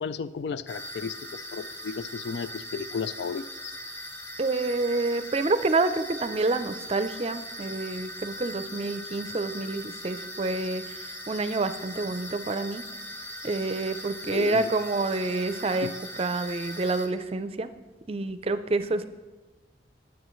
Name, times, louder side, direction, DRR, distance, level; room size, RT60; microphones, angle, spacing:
voice 1, 0.0-3.7 14.3-14.7 15.8-16.0, left 5 dB, 75° left, 15 dB, 0.4 m, -34 dB
sound 1, 0.7-17.1, equal, 15° left, 0.9 m, -40 dB
voice 2, 4.4-12.8 13.4-15.9 16.2-17.7 18.1-19.1, right 3 dB, 35° right, 11 dB, 0.5 m, -28 dB
19.5 x 7.3 x 3.1 m, 1.2 s
head